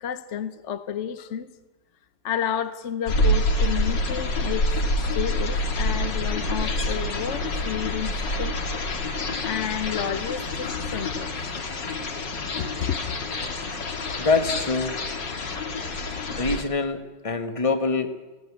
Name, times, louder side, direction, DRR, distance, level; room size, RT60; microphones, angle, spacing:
voice 1, 0.0-1.5 2.2-8.6 9.4-11.3 12.0-12.2 12.6-13.2, left 9 dB, 50° left, 0.9 m, -31 dB
sound 1, 3.1-16.6, left 1 dB, 85° left, 2.6 m, -27 dB
voice 2, 14.2-15.0 16.4-18.1, left 4 dB, 20° left, 1.3 m, -24 dB
17.5 x 17.0 x 9.7 m
omnidirectional pair, 1.9 m